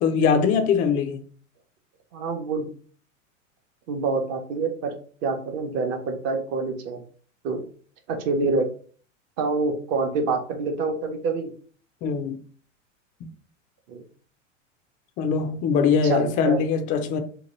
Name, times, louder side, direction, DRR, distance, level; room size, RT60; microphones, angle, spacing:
voice 1, 0.0-1.2 12.0-12.4 15.2-17.2, left 6 dB, 20° left, 0.3 m, -22 dB
voice 2, 2.1-2.7 3.9-4.9 5.2-7.0 7.4-7.6 8.1-8.7 9.4-11.5 13.9-14.0 16.0-16.6, right 4 dB, 40° right, 0.8 m, -26 dB
2.9 x 2.2 x 3.0 m
hypercardioid pair, 100°, 38 cm